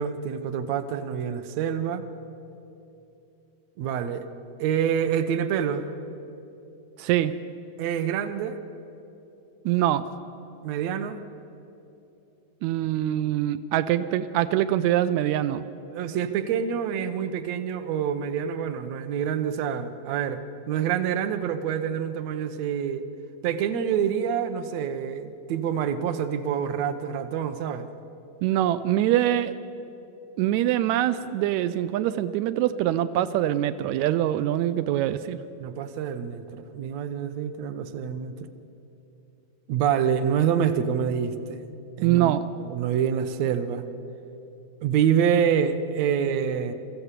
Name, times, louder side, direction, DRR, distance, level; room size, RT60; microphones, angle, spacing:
voice 1, 0.0-2.0 3.8-4.3 4.6-5.9 7.8-8.6 10.6-11.2 15.9-23.0 23.4-27.9 35.6-38.5 39.7-41.6 42.0-43.8 44.8-46.7, right 8 dB, 70° right, 10 dB, 1.7 m, -27 dB
voice 2, 7.0-7.3 9.6-10.0 12.6-15.6 28.4-29.5 30.4-35.4 42.0-42.4, right 12 dB, 90° right, 11 dB, 1.6 m, -24 dB
24.0 x 14.5 x 8.2 m, 2.9 s
omnidirectional pair, 3.9 m